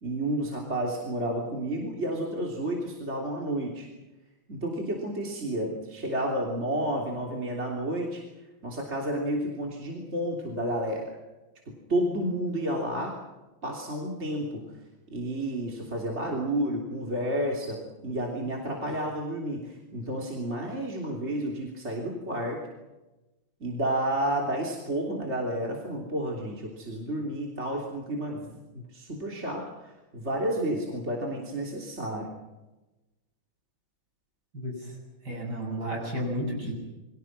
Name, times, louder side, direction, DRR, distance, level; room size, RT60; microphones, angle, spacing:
voice 1, 0.0-3.9 4.5-8.2 8.6-11.2 11.7-13.2 13.6-14.7 15.1-22.6 23.6-32.3, right 1 dB, 30° right, -1 dB, 3.5 m, -31 dB
voice 2, 34.5-34.9 35.2-36.7, equal, 55° right, 0 dB, 8.5 m, -32 dB
29.0 x 23.0 x 6.2 m, 1.1 s
omnidirectional pair, 2.2 m